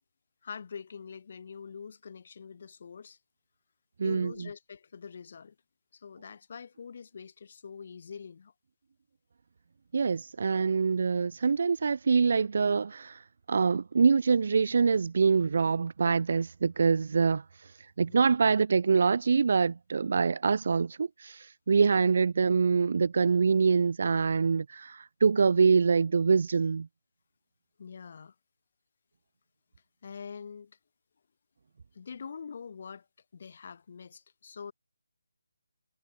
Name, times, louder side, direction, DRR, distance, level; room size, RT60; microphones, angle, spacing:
voice 1, 0.4-3.2 4.0-5.6 5.9-8.5 18.1-18.4 21.9-22.1 27.8-28.3 30.0-30.8 31.9-33.1 33.3-34.7, left 6 dB, 50° left, 5.3 m, -44 dB
voice 2, 4.0-4.3 9.9-13.2 13.5-17.4 18.0-26.9, right 5 dB, 55° right, 1.8 m, -25 dB
figure-of-eight pair, 155°, 0 cm